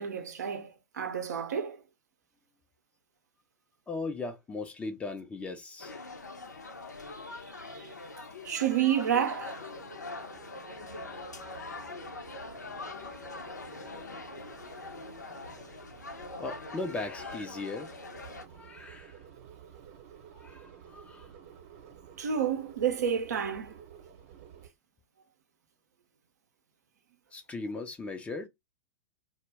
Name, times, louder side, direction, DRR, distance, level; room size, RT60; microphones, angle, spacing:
voice 1, 0.0-1.8 7.2-8.0 8.4-9.6 22.2-23.7, right 8 dB, 75° right, 0.6 m, -30 dB
voice 2, 3.9-5.9 12.8-13.0 15.3-15.6 16.4-17.9 18.5-19.2 20.3-21.3 27.3-28.5, left 3 dB, 15° left, 0.5 m, -38 dB
sound 1, 5.8-18.4, left 3 dB, 90° left, 0.6 m, -43 dB
sound 2, 9.1-24.7, right 8 dB, 55° right, 0.9 m, -52 dB
2.1 x 2.1 x 3.3 m
hypercardioid pair, 105°, 9 cm